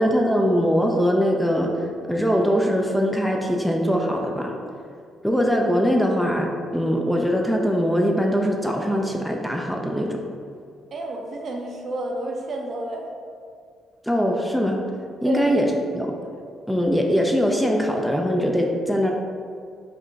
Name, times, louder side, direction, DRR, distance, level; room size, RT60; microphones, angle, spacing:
voice 1, 0.0-4.6 5.2-10.2 14.0-14.8 15.2-16.2 16.7-19.1, equal, ahead, 1 dB, 0.4 m, -22 dB
voice 2, 10.9-13.1 15.2-15.5, right 2 dB, 55° right, 1 dB, 0.6 m, -30 dB
4.4 x 2.1 x 3.9 m, 2.3 s
cardioid pair, 90°, 0 cm